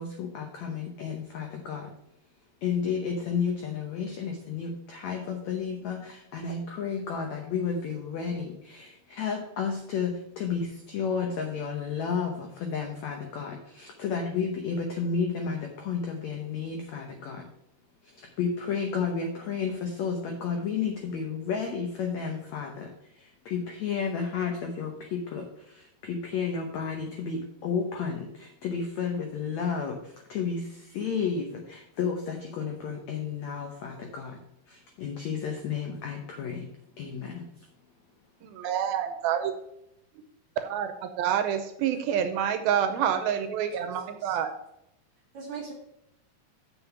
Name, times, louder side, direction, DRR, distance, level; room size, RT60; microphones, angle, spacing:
voice 1, 0.0-1.9 2.6-17.5 18.0-34.4 34.7-36.7 37.0-37.4, left 6 dB, 80° left, 3 dB, 1.6 m, -32 dB
voice 2, 38.4-39.5 40.6-44.5, right 9 dB, 80° right, 8 dB, 2.4 m, -28 dB
voice 3, 43.1-43.9 44.2-44.4 45.3-45.7, right 4 dB, 45° right, 0 dB, 1.9 m, -41 dB
7.4 x 6.3 x 5.7 m, 0.81 s
omnidirectional pair, 4.6 m